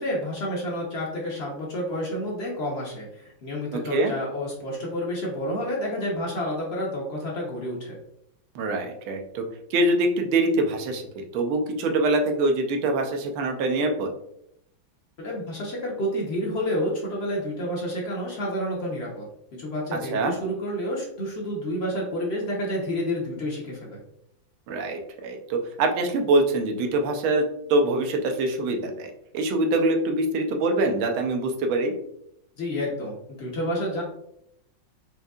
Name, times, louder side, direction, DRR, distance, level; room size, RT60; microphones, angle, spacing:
voice 1, 0.0-8.0 15.2-19.3 19.6-24.0 32.6-34.0, equal, 60° left, -3 dB, 0.6 m, -29 dB
voice 2, 3.7-4.1 8.5-9.4 9.7-14.1 20.1-20.3 24.7-31.9, right 2 dB, 90° right, 4 dB, 1.5 m, -24 dB
4.9 x 2.7 x 2.3 m, 0.76 s
omnidirectional pair, 2.2 m